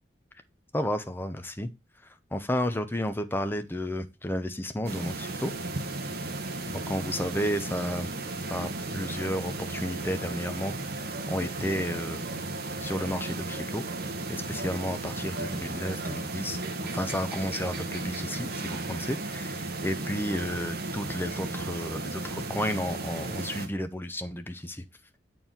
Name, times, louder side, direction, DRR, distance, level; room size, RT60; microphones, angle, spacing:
voice 1, 0.7-1.7 2.0-5.5 6.7-8.1 8.5-12.2 12.8-13.8 14.3-24.8, left 1 dB, 10° left, 8 dB, 0.7 m, -32 dB
sound 1, 4.8-23.7, right 2 dB, 60° right, 1.2 m, -35 dB
7.6 x 4.5 x 3.6 m, 0.25 s
head